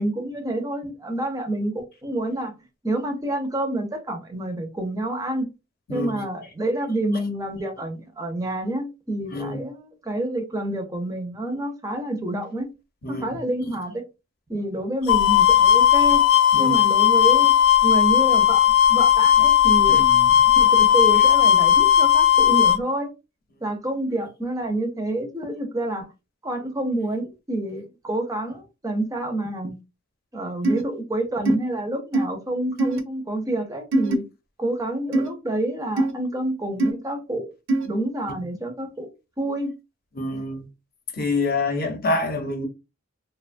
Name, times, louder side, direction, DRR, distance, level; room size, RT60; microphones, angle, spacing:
voice 1, 0.0-2.5 2.8-5.5 5.9-12.7 13.1-14.0 14.5-16.2 16.6-20.0 20.6-23.1 23.6-26.1 26.4-29.8 30.3-34.2 34.6-37.5 37.8-39.1 39.4-39.7, right 1 dB, 15° right, 0.5 m, -28 dB
voice 2, 5.9-6.2 9.3-9.6 13.0-13.2 16.5-16.7 19.9-20.3 40.2-40.7 41.1-42.6, left 2 dB, 50° left, 0.7 m, -26 dB
sound 1, 15.1-22.8, left 10 dB, 85° left, 0.3 m, -16 dB
sound 2, 30.6-30.8 31.4-31.6 32.1-32.3 32.8-33.0 33.9-34.2 35.1-35.3 36.0-36.1 36.8-36.9 37.7-37.9, right 2 dB, 65° right, 0.5 m, -21 dB
2.8 x 2.2 x 2.4 m
head